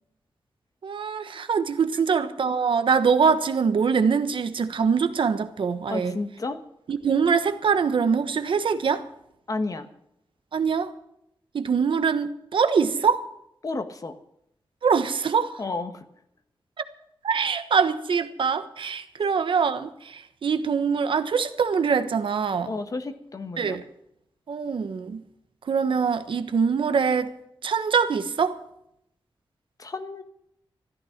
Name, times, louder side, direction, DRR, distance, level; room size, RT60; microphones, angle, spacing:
voice 1, 0.8-6.2 6.9-9.0 10.5-10.9 11.5-13.2 14.8-15.6 16.8-16.9 17.2-22.7 23.6-23.8 24.5-25.2 25.7-27.3 27.6-28.6, right 6 dB, 70° right, 1.2 m, -23 dB
voice 2, 5.9-6.6 9.5-9.9 13.6-14.1 15.6-16.0 22.7-23.8 29.8-30.2, left 3 dB, 40° left, 1.4 m, -31 dB
14.0 x 13.0 x 5.9 m
wide cardioid pair, 120°, 9 cm